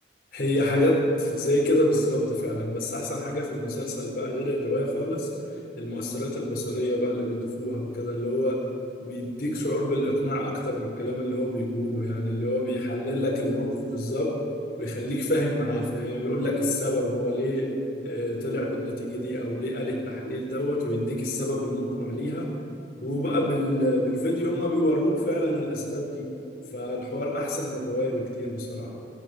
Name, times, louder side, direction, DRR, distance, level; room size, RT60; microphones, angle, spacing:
voice 1, 0.3-5.3 5.8-8.6 9.0-14.3 14.8-17.7 18.0-22.5 23.0-26.2 26.7-28.9, left 1 dB, 55° left, -4 dB, 4.6 m, -27 dB
27.5 x 13.0 x 8.0 m, 2.8 s
head